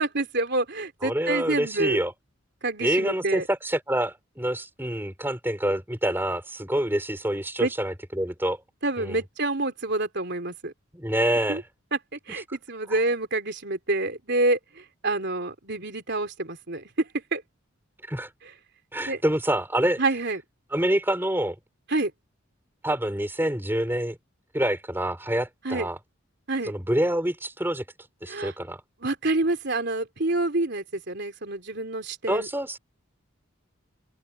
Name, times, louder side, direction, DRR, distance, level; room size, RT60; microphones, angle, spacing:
voice 1, 0.0-2.0 2.6-3.4 7.6-7.7 8.8-10.7 11.5-11.6 11.9-17.4 19.1-19.2 20.0-20.4 21.9-22.1 25.6-25.9 26.5-26.7 28.3-28.5 29.0-32.5, right 2 dB, 55° right, 3.6 m, -27 dB
voice 2, 1.0-2.1 2.8-8.6 9.0-9.2 10.9-11.6 12.9-13.0 18.1-18.3 18.9-20.0 20.7-21.6 22.8-24.2 24.5-26.0 26.7-27.8 28.2-28.8 32.3-32.8, right 1 dB, 10° right, 3.7 m, -26 dB
open air
head